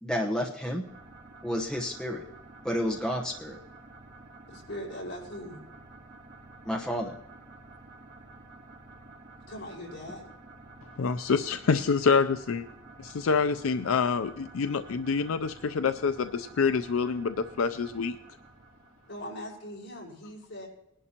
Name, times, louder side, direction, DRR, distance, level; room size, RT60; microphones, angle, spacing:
voice 1, 0.0-0.9 1.4-2.2 2.6-3.6 6.6-7.2, equal, 5° left, -1 dB, 1.0 m, -30 dB
sound 1, 0.8-19.7, right 2 dB, 60° right, 3.6 m, -50 dB
voice 2, 4.5-5.6 9.5-10.3 19.0-20.7, left 1 dB, 60° left, -3 dB, 5.1 m, -40 dB
voice 3, 11.0-12.6 13.0-18.2, left 5 dB, 85° left, 9 dB, 0.5 m, -26 dB
20.5 x 11.0 x 2.9 m, 0.85 s
head